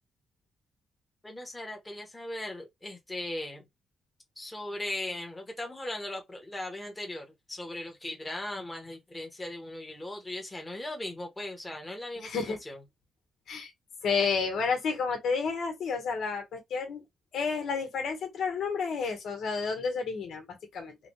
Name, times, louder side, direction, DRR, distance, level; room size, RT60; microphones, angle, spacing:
voice 1, 1.2-3.6 4.4-12.3 12.7-12.8, left 1 dB, 15° left, 1.1 m, -38 dB
voice 2, 12.2-12.6 13.5-13.7 14.0-17.0 17.3-21.0, left 5 dB, 75° left, 1.4 m, -31 dB
3.8 x 2.3 x 3.1 m
cardioid pair, 140°, 0 cm